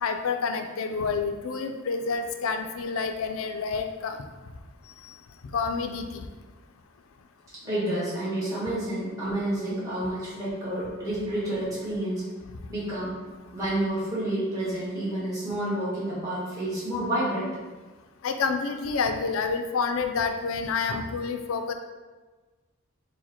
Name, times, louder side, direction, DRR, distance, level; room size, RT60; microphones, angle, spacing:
voice 1, 0.0-4.2 5.5-6.2 18.2-21.7, left 5 dB, 75° left, 6 dB, 0.4 m, -28 dB
voice 2, 7.6-12.3 12.7-13.2 13.5-17.5, right 1 dB, 15° right, -10 dB, 1.4 m, -29 dB
4.7 x 2.1 x 4.3 m, 1.3 s
head